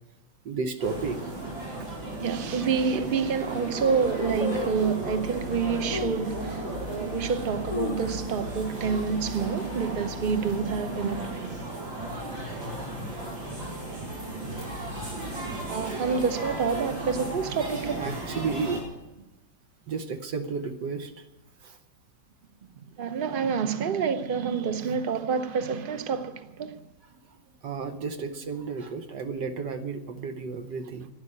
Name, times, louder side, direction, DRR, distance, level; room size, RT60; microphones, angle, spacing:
voice 1, 0.4-1.3 2.0-2.3 2.9-3.0 18.0-18.9 19.9-21.3 21.6-21.8 27.1-31.1, right 4 dB, 70° right, 1.5 m, -33 dB
sound 1, 0.8-18.8, right 1 dB, 90° right, 5.0 m, -35 dB
voice 2, 2.2-11.5 15.7-18.1 23.0-26.8, right 6 dB, 40° right, 0.8 m, -28 dB
sound 2, 2.4-2.5 3.1-3.2 3.4-3.8 4.4-5.1 5.9-6.3 6.8-6.9 7.5-8.6 8.9-9.0 9.3-9.7 10.1-10.4 11.1-11.8 12.1-12.2, left 4 dB, 45° left, 0.4 m, -35 dB
12.0 x 10.5 x 9.7 m
omnidirectional pair, 2.0 m